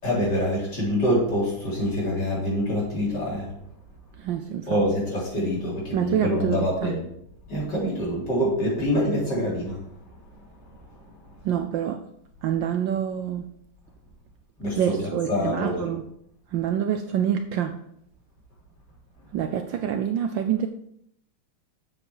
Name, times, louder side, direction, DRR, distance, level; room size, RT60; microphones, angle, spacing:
voice 1, 0.0-3.5 4.7-7.0 7.5-9.9 10.7-11.4 14.6-15.9, equal, 50° left, -6 dB, 4.3 m, -26 dB
voice 2, 4.2-4.8 5.9-6.9 11.4-12.0 12.4-13.5 14.7-16.0 16.5-17.8 19.3-20.7, right 9 dB, 75° right, 7 dB, 1.2 m, -26 dB
7.6 x 7.4 x 4.8 m, 0.73 s
omnidirectional pair, 2.4 m